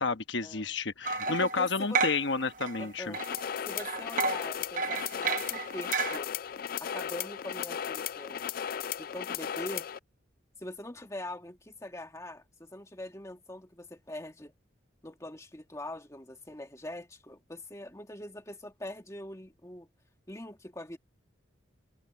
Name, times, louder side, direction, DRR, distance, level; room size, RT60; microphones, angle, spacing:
voice 1, 0.0-3.1, left 4 dB, 65° left, 1.2 m, -30 dB
sound 1, 1.0-2.9 3.1-6.2, right 4 dB, 40° right, 0.7 m, -32 dB
voice 2, 1.3-2.0 2.8-3.2 3.6-6.3 6.8-8.4 9.0-9.9 10.6-14.5 15.0-19.9 20.3-21.0, left 1 dB, 15° left, 2.0 m, -43 dB
sound 2, 3.1-10.0, left 8 dB, 45° left, 0.3 m, -36 dB
head